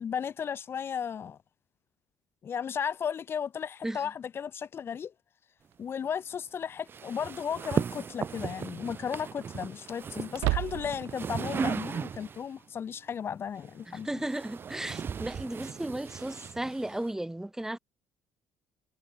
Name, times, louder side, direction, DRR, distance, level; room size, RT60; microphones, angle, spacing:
voice 1, 0.0-1.4 2.4-5.1 5.8-14.2, left 7 dB, 45° left, 2.3 m, -35 dB
sound 1, 5.7-5.8 7.6-8.0 8.4-8.5 10.3-11.2, right 22 dB, 75° right, 0.4 m, -31 dB
sound 2, 6.9-12.5 13.6-17.1, right 7 dB, 40° right, 2.6 m, -37 dB
voice 2, 13.9-17.8, right 1 dB, 10° right, 2.7 m, -35 dB
supercardioid pair, 75°, 6 cm